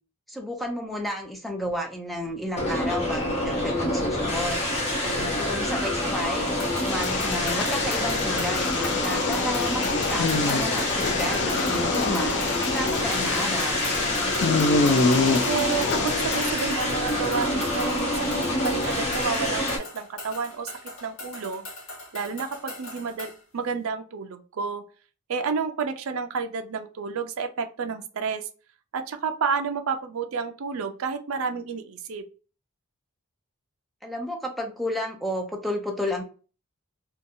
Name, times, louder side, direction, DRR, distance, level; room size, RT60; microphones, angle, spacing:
voice 1, 0.3-4.7 5.4-6.5 6.8-12.4 12.7-13.9 34.0-36.2, equal, ahead, 1 dB, 0.5 m, -31 dB
sound 1, 2.6-19.8, left 1 dB, 30° left, 0.9 m, -27 dB
voice 2, 5.0-5.4 15.5-20.7 21.0-21.6 22.1-24.8 25.3-28.5 28.9-32.2, right 5 dB, 70° right, 7 dB, 0.4 m, -30 dB
sound 2, 6.6-23.4, left 2 dB, 85° left, 1.2 m, -40 dB
sound 3, 6.9-16.5, left 4 dB, 55° left, 0.4 m, -27 dB
2.8 x 2.2 x 2.6 m, 0.36 s
head